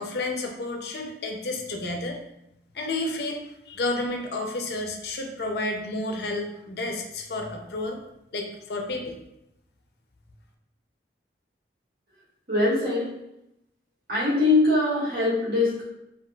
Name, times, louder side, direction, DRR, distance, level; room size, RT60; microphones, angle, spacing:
voice 1, 0.0-2.2 2.7-8.0 8.3-9.1, left 2 dB, 60° left, 3 dB, 0.5 m, -31 dB
voice 2, 12.5-13.1 14.1-15.8, left 2 dB, 55° right, -10 dB, 1.5 m, -22 dB
3.8 x 2.3 x 2.3 m, 0.85 s
head